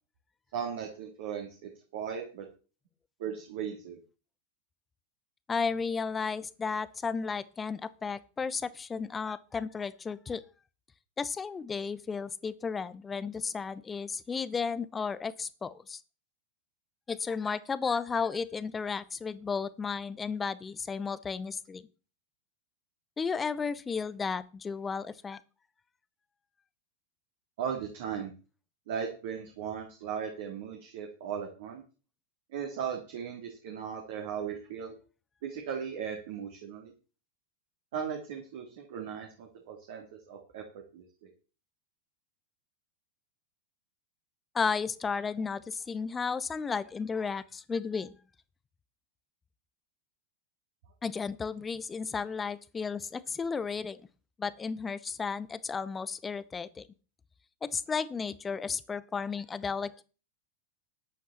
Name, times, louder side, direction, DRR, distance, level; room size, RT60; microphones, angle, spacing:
voice 1, 0.5-2.5 3.2-4.0 27.6-28.3 28.9-31.8 32.5-34.9 35.4-36.9 37.9-40.6 40.9-41.0, right 7 dB, 55° right, 1 dB, 3.0 m, -37 dB
voice 2, 5.5-10.4 11.2-16.0 17.1-21.8 23.2-25.4 44.5-48.1 51.0-54.0 54.4-56.9 57.6-60.0, left 5 dB, 15° left, 17 dB, 0.9 m, -33 dB
13.5 x 10.0 x 4.3 m, 0.35 s
figure-of-eight pair, 90°, 0 cm